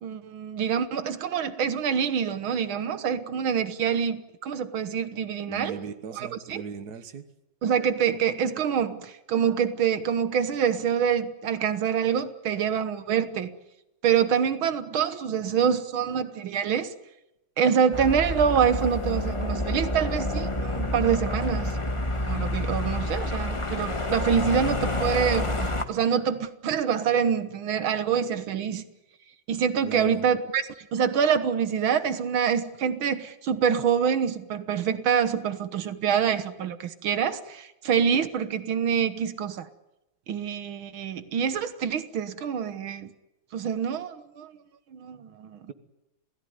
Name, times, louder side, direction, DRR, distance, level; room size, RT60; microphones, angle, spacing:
voice 1, 0.0-5.8 6.1-6.6 7.6-13.5 14.0-16.9 17.6-21.9 22.2-28.8 29.5-39.7 40.3-43.1 43.5-44.5 44.9-45.6, right 7 dB, 85° right, 12 dB, 2.0 m, -26 dB
voice 2, 5.5-7.2 29.8-30.3, right 6 dB, 55° right, 10 dB, 1.9 m, -38 dB
sound 1, 17.9-25.8, left 1 dB, 15° left, 1.4 m, -28 dB
27.5 x 17.0 x 9.5 m, 0.92 s
omnidirectional pair, 2.2 m